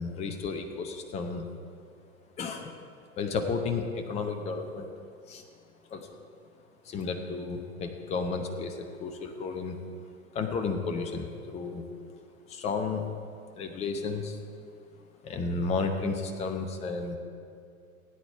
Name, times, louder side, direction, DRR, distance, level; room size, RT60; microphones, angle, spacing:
voice 1, 0.0-1.5 2.4-2.7 3.2-4.9 5.3-5.4 5.9-6.1 6.9-9.8 10.3-11.8 12.5-13.2 13.6-14.4 15.2-17.2, left 4 dB, 15° left, 6 dB, 0.7 m, -32 dB
16.5 x 9.0 x 4.6 m, 2.5 s
figure-of-eight pair, 95°, 43 cm